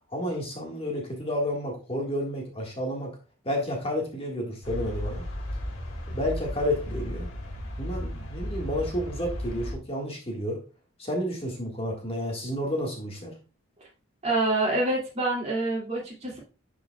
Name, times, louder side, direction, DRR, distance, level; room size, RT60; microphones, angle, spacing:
voice 1, 0.1-3.2 3.4-5.3 6.1-7.3 7.8-10.6 11.0-13.4, equal, 30° left, 0 dB, 1.5 m, -31 dB
sound 1, 4.6-9.8, left 1 dB, 80° left, 1.6 m, -34 dB
voice 2, 14.2-16.4, right 2 dB, 30° right, -3 dB, 2.2 m, -26 dB
10.5 x 4.7 x 2.2 m, 0.33 s
head